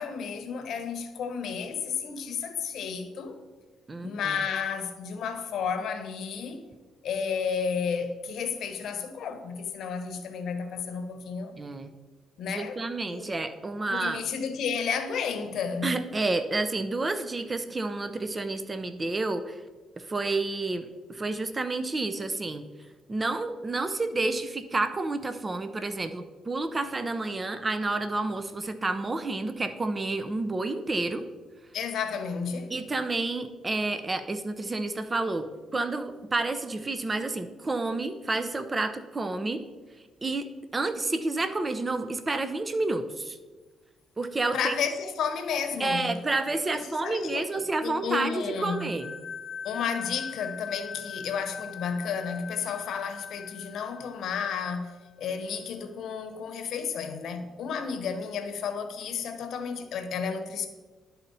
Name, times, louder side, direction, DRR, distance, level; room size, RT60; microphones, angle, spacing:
voice 1, 0.0-3.4 4.0-6.6 7.0-11.5 12.4-13.3 13.9-15.9 31.7-32.7 44.5-46.1 46.9-48.9 49.6-60.7, left 6 dB, 70° left, 0.9 m, -32 dB
voice 2, 3.9-4.4 11.6-11.9 12.5-14.2 15.8-19.6 20.0-22.6 23.1-31.2 32.7-35.5 35.7-39.6 40.2-40.5 40.7-43.4 44.2-44.7 45.8-49.1, right 2 dB, 25° right, 0.5 m, -30 dB
sound 1, 48.5-55.0, left 7 dB, 40° left, 0.5 m, -41 dB
11.5 x 4.2 x 4.0 m
cardioid pair, 90°, 0 cm